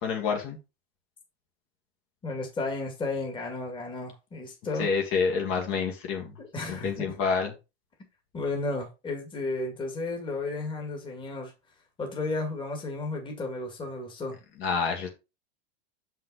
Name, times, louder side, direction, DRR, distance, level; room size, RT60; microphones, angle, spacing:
voice 1, 0.0-0.6 4.8-6.3 6.7-7.5 14.6-15.1, left 5 dB, 40° left, 1.9 m, -28 dB
voice 2, 2.2-4.9 6.4-7.2 8.3-11.5 12.0-14.4, left 3 dB, 15° left, 2.0 m, -33 dB
6.6 x 5.6 x 3.9 m
supercardioid pair, 145°, 33 cm